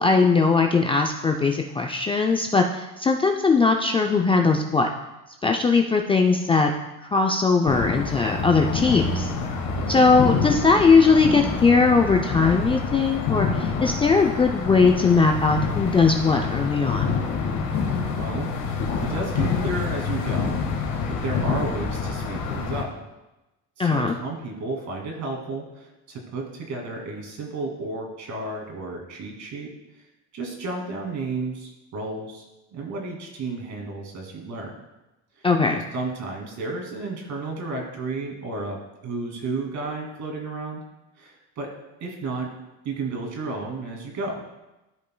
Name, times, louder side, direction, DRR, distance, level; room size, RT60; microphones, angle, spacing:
voice 1, 0.0-4.9 5.4-6.7 7.1-9.3 9.9-17.1 23.8-24.2 35.4-35.8, left 4 dB, 15° left, 2 dB, 0.4 m, -20 dB
sound 1, 7.7-22.8, left 5 dB, 65° left, 1.9 m, -27 dB
voice 2, 18.1-20.5 20.8-22.9 23.8-29.7 29.9-30.0 30.3-32.5 32.7-34.8 35.4-35.5 35.7-40.8 41.2-41.7 42.0-42.5 42.8-44.4, right 3 dB, 50° right, 1 dB, 2.4 m, -32 dB
13.5 x 5.3 x 2.2 m, 1.0 s
cardioid pair, 120°, 36 cm